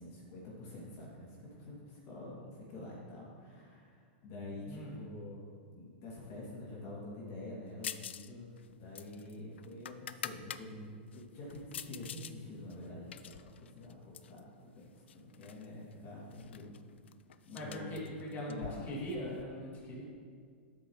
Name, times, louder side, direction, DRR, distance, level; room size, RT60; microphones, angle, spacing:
voice 1, 0.0-5.5 5.7-16.7 17.4-18.0 18.5-18.9, left 2 dB, 45° left, -5 dB, 2.6 m, -47 dB
sound 1, 7.8-8.3 8.6-10.6 11.1-12.3 12.7-14.4 15.1-15.7 15.9-16.0 16.3-19.4, left 9 dB, 90° left, 0.4 m, -46 dB
voice 2, 17.5-20.0, equal, 30° left, -5 dB, 2.8 m, -41 dB
11.5 x 8.5 x 3.2 m, 2.1 s
hypercardioid pair, 125°, 6 cm